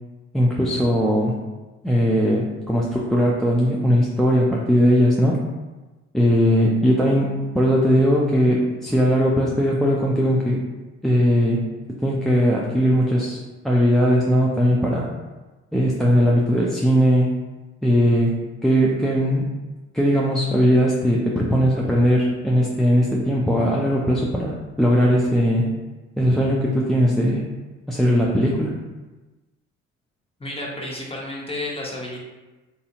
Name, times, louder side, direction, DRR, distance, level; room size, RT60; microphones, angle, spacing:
voice 1, 0.3-1.3 1.8-5.4 6.1-10.6 11.0-11.7 12.0-15.1 15.7-17.3 17.8-19.5 19.9-25.7 26.2-27.5 27.9-28.8, equal, ahead, -4 dB, 0.3 m, -19 dB
voice 2, 30.4-32.2, left 1 dB, 15° left, -3 dB, 0.9 m, -31 dB
2.8 x 2.7 x 2.5 m, 1.1 s
hypercardioid pair, 55°, 34 cm